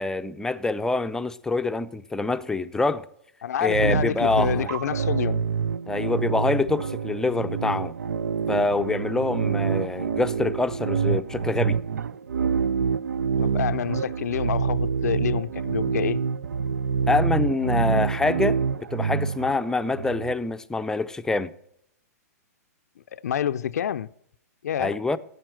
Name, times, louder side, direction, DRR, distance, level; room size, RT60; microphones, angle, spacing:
voice 1, 0.0-3.1 3.6-4.7 5.9-7.9 8.5-11.8 17.1-18.6 18.9-21.5 24.8-25.2, left 3 dB, 5° left, 0.5 m, -25 dB
voice 2, 3.4-5.4 13.4-16.2 23.1-24.1 24.6-25.0, left 9 dB, 75° left, 0.5 m, -28 dB
sound 1, 3.7-20.3, right 6 dB, 85° right, 0.4 m, -26 dB
14.5 x 9.3 x 7.7 m
hypercardioid pair, 125°, 9 cm